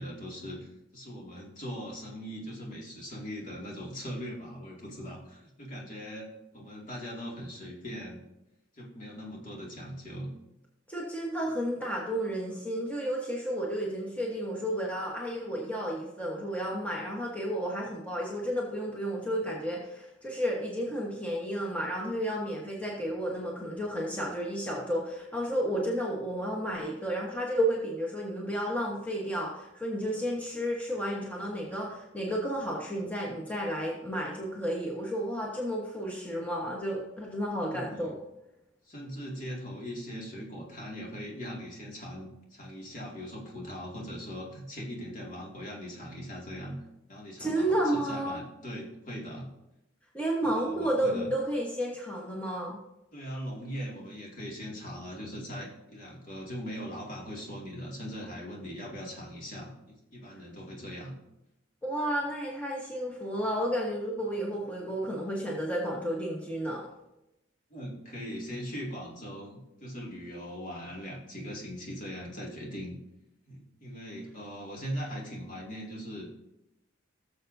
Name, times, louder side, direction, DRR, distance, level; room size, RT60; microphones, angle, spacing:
voice 1, 0.0-8.2 8.8-10.3 37.7-38.2 38.8-46.8 47.1-49.5 50.4-51.3 53.1-61.1 67.7-73.0 73.5-76.3, equal, 40° left, -3 dB, 2.3 m, -40 dB
voice 2, 10.9-38.1 47.4-48.4 50.1-52.8 61.8-66.9, equal, 10° left, -3 dB, 1.2 m, -32 dB
18.0 x 7.0 x 2.7 m, 0.91 s
head